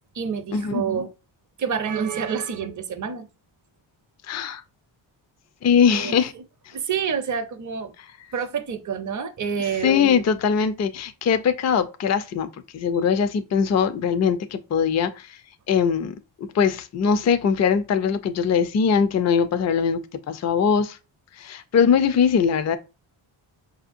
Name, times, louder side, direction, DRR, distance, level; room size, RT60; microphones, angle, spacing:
voice 1, 0.1-1.1 1.6-3.3 5.9-6.2 6.7-7.9 8.3-10.1, right 6 dB, 40° right, 0.6 m, -28 dB
voice 2, 4.3-4.6 5.6-6.3 9.8-12.5 12.7-15.4 15.7-20.0 20.3-21.0 21.4-22.8, left 7 dB, 35° left, 0.4 m, -21 dB
5.4 x 2.8 x 2.5 m
cardioid pair, 95°, 50 cm